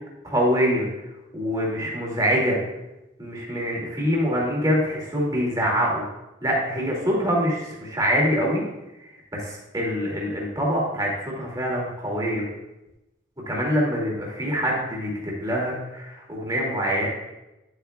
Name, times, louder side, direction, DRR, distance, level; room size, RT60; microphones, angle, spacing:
voice 1, 0.2-0.9 1.3-2.6 3.2-6.0 6.4-8.6 9.0-12.4 13.5-17.1, equal, 20° right, -3 dB, 2.3 m, -25 dB
11.0 x 8.0 x 2.3 m, 0.97 s
head